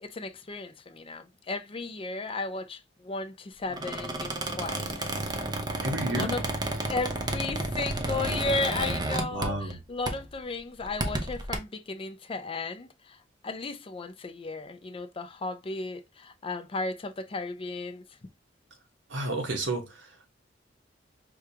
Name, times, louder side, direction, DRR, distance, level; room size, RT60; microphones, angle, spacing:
voice 1, 0.0-5.2 6.1-6.5 6.9-13.2 13.4-18.0, left 3 dB, 30° left, 0.5 m, -35 dB
Squeak, 3.7-9.8 10.1-10.3 10.8-11.6, right 2 dB, 20° right, 0.6 m, -32 dB
voice 2, 5.8-6.3 9.3-9.8 19.1-19.8, right 2 dB, 70° right, 1.2 m, -30 dB
4.8 x 2.4 x 2.7 m
head